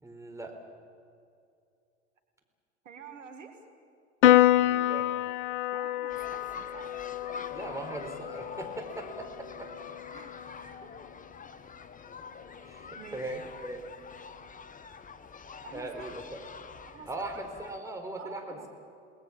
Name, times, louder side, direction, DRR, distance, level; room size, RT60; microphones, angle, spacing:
voice 1, 0.0-0.5 4.5-5.1 7.5-9.9 11.5-11.6 12.6-13.8 15.7-16.4 17.1-18.7, right 2 dB, 10° right, 3 dB, 4.6 m, -40 dB
voice 2, 2.8-3.5 5.7-6.9 10.1-10.9 13.0-13.2 15.6-16.1 16.9-17.4 18.2-18.7, right 7 dB, 80° right, 6 dB, 2.1 m, -48 dB
Piano, 4.2-10.9, left 13 dB, 70° left, 0.9 m, -27 dB
sound 1, 6.1-17.8, left 5 dB, 20° left, 1.3 m, -46 dB
29.0 x 19.5 x 7.5 m, 2.4 s
figure-of-eight pair, 75°, 37 cm